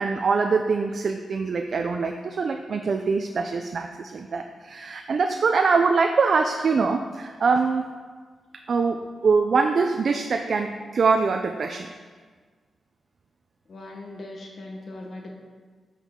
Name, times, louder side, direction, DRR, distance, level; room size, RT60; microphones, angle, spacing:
voice 1, 0.0-7.9 8.7-11.9, right 4 dB, 55° right, 5 dB, 0.5 m, -23 dB
voice 2, 13.7-15.3, left 2 dB, 50° left, 0 dB, 1.3 m, -39 dB
12.5 x 6.5 x 3.7 m, 1.5 s
cardioid pair, 105°, 0 cm